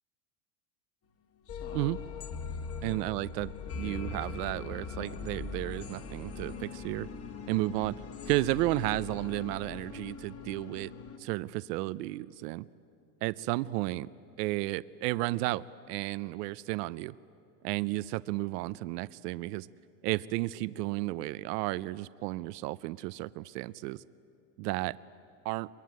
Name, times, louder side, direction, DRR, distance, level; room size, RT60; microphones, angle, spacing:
sound 1, 1.5-11.2, left 5 dB, 30° left, 1.4 m, -41 dB
voice 1, 2.8-7.1 7.5-7.9 8.3-10.9 11.2-12.6 13.2-14.1 14.4-17.1 17.6-19.7 20.0-24.0 24.6-25.0 25.4-25.7, right 18 dB, 90° right, 18 dB, 0.6 m, -33 dB
23.5 x 22.5 x 9.3 m, 2.7 s
cardioid pair, 150°, 46 cm